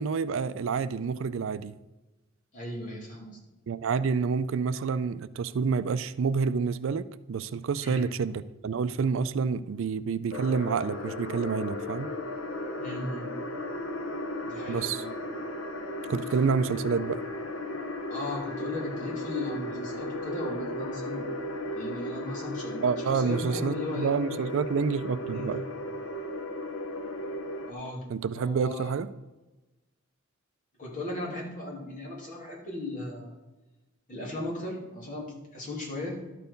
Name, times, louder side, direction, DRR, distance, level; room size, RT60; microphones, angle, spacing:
voice 1, 0.0-1.8 3.7-12.1 14.7-15.0 16.1-17.2 22.8-25.6 28.1-29.1, right 5 dB, 65° right, 15 dB, 0.4 m, -28 dB
voice 2, 2.5-3.4 7.8-8.0 12.8-13.3 14.4-15.1 18.1-21.3 21.7-24.1 25.3-25.5 27.6-29.0 30.8-33.3 34.1-36.2, left 2 dB, 40° left, -3 dB, 2.7 m, -37 dB
sound 1, 10.3-27.7, left 1 dB, 85° left, 0.9 m, -35 dB
12.0 x 4.6 x 5.2 m, 1.1 s
head